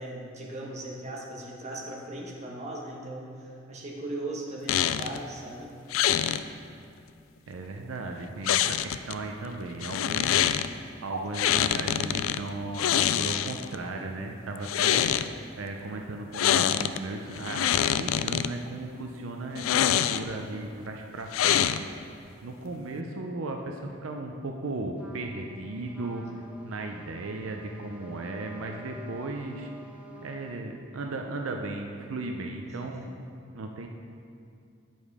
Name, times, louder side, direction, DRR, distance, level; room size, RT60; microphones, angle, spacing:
voice 1, 0.0-5.7 22.6-22.9 32.6-33.1, right 1 dB, 35° right, -2 dB, 1.2 m, -39 dB
sound 1, 4.7-5.2 5.9-6.4 8.4-9.1 9.8-10.7 11.3-12.4 12.7-13.7 14.6-15.3 16.3-17.0 17.3-18.5 19.6-20.4 21.3-22.0, left 11 dB, 90° left, 0.3 m, -25 dB
voice 2, 7.5-10.7 11.0-15.1 15.6-21.9 22.4-26.3 26.6-29.7 30.2-33.1 33.5-33.9, right 2 dB, 85° right, 3 dB, 0.6 m, -36 dB
Trumpet, 25.0-30.6, right 2 dB, 5° right, 0.7 m, -49 dB
8.7 x 5.3 x 4.8 m, 2.5 s
head